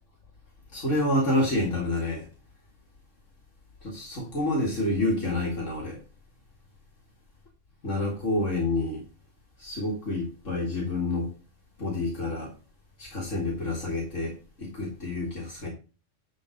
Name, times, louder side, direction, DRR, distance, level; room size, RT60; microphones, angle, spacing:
voice 1, 0.7-2.3 3.8-6.0 7.8-9.0 9.6-11.3 11.8-12.5 13.0-15.7, left 2 dB, 85° left, 2.5 m, -28 dB
10.5 x 4.2 x 5.1 m
omnidirectional pair, 1.3 m